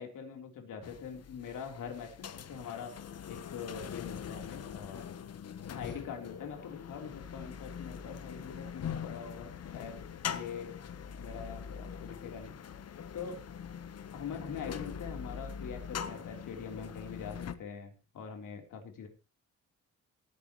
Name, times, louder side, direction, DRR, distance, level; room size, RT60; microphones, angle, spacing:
voice 1, 0.0-3.0 3.2-5.0 5.7-10.0 10.3-10.7 11.2-12.6 13.1-13.4 14.1-19.1, left 6 dB, 75° left, 4 dB, 3.5 m, -43 dB
sound 1, 0.8-17.5, left 7 dB, 55° left, 1.1 m, -43 dB
19.0 x 10.5 x 3.0 m, 0.30 s
cardioid pair, 105°, 31 cm